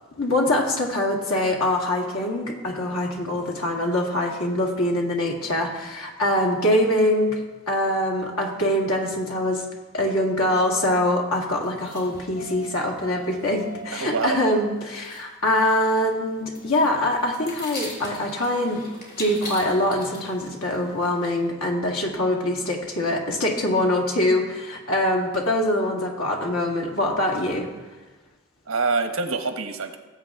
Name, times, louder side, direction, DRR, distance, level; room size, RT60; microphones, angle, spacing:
voice 1, 0.2-7.4 7.7-9.7 9.9-18.8 19.2-27.7, left 1 dB, 80° left, 1 dB, 2.0 m, -24 dB
sound 1, 11.6-14.0 14.3-14.4 14.6-14.7 14.9-15.2 15.5-21.5, left 1 dB, 45° left, 3.1 m, -40 dB
voice 2, 13.9-14.4 28.7-30.0, right 4 dB, 70° right, 7 dB, 1.1 m, -25 dB
18.5 x 8.0 x 3.6 m, 1.2 s
head